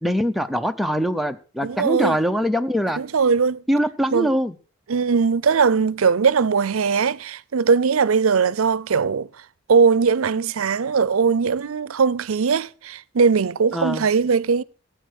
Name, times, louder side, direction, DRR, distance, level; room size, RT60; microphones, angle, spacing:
voice 1, 0.0-3.0 3.7-4.6 13.7-14.1, equal, ahead, 0.6 m, -23 dB
voice 2, 1.6-2.2 3.0-3.6 4.1-4.3 4.9-9.3 9.7-14.6, right 5 dB, 85° right, 0.5 m, -20 dB
14.0 x 9.1 x 6.4 m
head